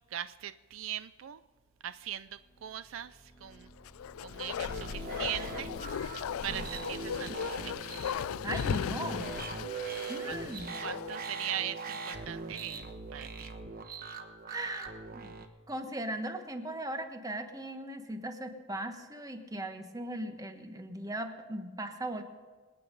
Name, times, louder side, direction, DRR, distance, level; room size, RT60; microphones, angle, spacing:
voice 1, 0.1-1.4 1.8-3.7 4.2-5.7 6.4-7.9 10.3-10.4 10.8-13.5, right 11 dB, 70° right, 15 dB, 0.4 m, -40 dB
sound 1, 1.8-9.5, right 1 dB, 15° left, 1.5 m, -55 dB
Bark, 3.8-11.4 11.7-11.8, left 8 dB, 85° left, 0.3 m, -37 dB
sound 2, 4.7-15.5, right 4 dB, 45° right, 1.2 m, -41 dB
voice 2, 8.4-9.3 10.1-10.8 14.5-15.3 15.7-22.2, right 1 dB, 15° right, 7 dB, 1.2 m, -38 dB
26.5 x 9.2 x 5.3 m, 1.4 s
head